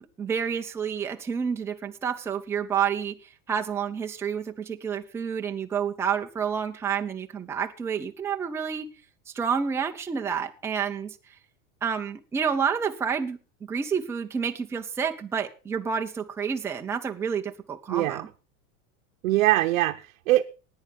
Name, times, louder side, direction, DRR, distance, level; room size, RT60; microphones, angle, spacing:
voice 1, 0.2-8.9 9.3-11.2 11.8-18.3, right 7 dB, 5° right, 0.5 m, -29 dB
voice 2, 17.9-18.3 19.2-20.4, right 16 dB, 80° right, 0.8 m, -23 dB
14.5 x 9.7 x 5.2 m
supercardioid pair, 155°, 39 cm